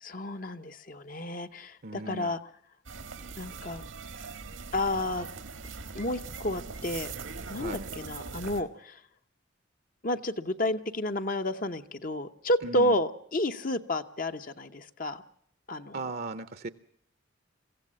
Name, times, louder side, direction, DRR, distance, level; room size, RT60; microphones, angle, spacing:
voice 1, 0.0-2.4 3.4-3.9 4.7-5.3 5.9-7.1 7.5-9.0 10.0-15.2 15.7-16.0, left 1 dB, 45° left, 8 dB, 0.9 m, -31 dB
voice 2, 1.8-2.4 7.6-7.9 12.6-13.0 15.9-16.7, right 2 dB, 50° right, 11 dB, 0.7 m, -37 dB
sound 1, 2.8-8.6, right 4 dB, 90° right, 1.7 m, -41 dB
23.5 x 15.5 x 7.5 m, 0.67 s
head